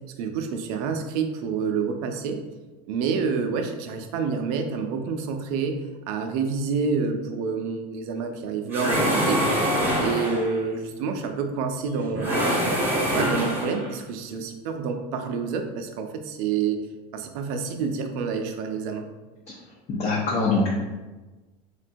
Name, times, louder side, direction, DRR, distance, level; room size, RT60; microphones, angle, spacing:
voice 1, 0.2-2.4 2.9-5.8 6.1-9.4 10.0-12.6 13.1-16.9 17.1-19.1, right 5 dB, 65° right, 5 dB, 0.4 m, -28 dB
sound 1, 8.7-10.6 12.1-13.9, equal, 10° right, 0.7 m, -24 dB
voice 2, 19.9-20.7, left 3 dB, 30° left, -4 dB, 0.5 m, -23 dB
3.7 x 2.2 x 2.5 m, 1.2 s
supercardioid pair, 130°, 21 cm